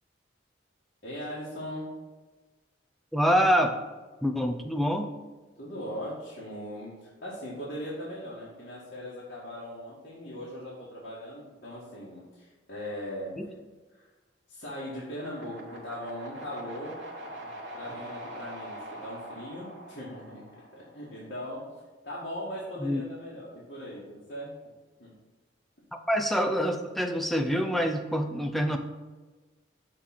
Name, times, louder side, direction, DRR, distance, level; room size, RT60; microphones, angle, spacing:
voice 1, 1.0-1.9 5.6-13.5 13.9-14.1 14.5-20.4 20.7-21.7 22.0-24.5 25.0-25.1, equal, 50° left, -8 dB, 1.6 m, -39 dB
voice 2, 3.1-3.8 4.2-5.1 13.4-13.5 22.8-23.0 26.1-28.8, equal, ahead, 4 dB, 0.4 m, -26 dB
sound 1, 15.1-21.3, right 1 dB, 75° right, 1.3 m, -43 dB
6.5 x 3.7 x 5.9 m, 1.3 s
head